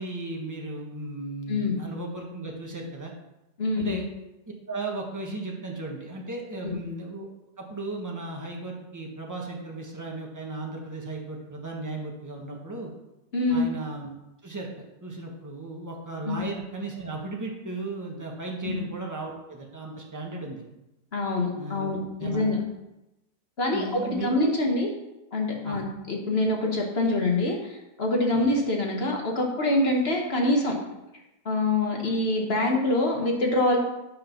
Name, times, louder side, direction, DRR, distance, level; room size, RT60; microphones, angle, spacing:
voice 1, 0.0-3.1 3.7-4.1 4.7-7.3 7.6-12.9 13.5-14.1 14.4-14.7 15.0-20.6 21.6-22.5 23.7-24.3 25.6-25.8 28.3-28.4, right 2 dB, 10° right, -1 dB, 1.3 m, -35 dB
voice 2, 3.6-4.0 6.6-6.7 13.3-13.7 16.2-16.4 18.6-18.8 21.1-22.6 23.6-24.9 25.3-30.7 31.4-33.8, left 2 dB, 35° left, 0 dB, 1.6 m, -25 dB
9.3 x 5.0 x 5.9 m, 0.95 s
omnidirectional pair, 1.9 m